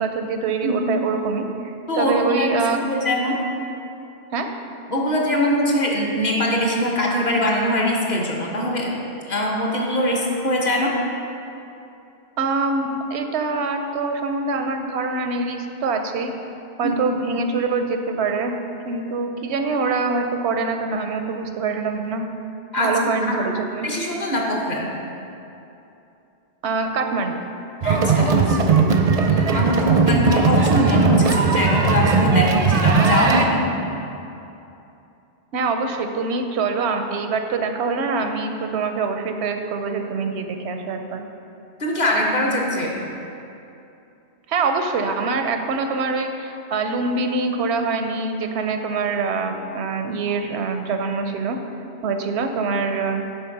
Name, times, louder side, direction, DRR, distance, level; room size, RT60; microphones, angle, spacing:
voice 1, 0.0-2.8 4.3-4.5 12.4-16.3 16.8-18.6 18.8-22.2 22.8-23.9 26.6-27.4 35.5-41.2 44.5-51.6 52.0-53.2, right 4 dB, 90° right, 5 dB, 0.9 m, -24 dB
voice 2, 1.9-3.4 4.9-10.9 16.8-17.2 22.7-23.5 23.8-24.9 27.8-28.6 29.3-33.7 41.8-43.0, equal, 45° left, -2 dB, 1.1 m, -22 dB
sound 1, 27.8-33.4, right 4 dB, 45° right, 0.5 m, -18 dB
6.6 x 4.7 x 5.8 m, 2.8 s
omnidirectional pair, 1.1 m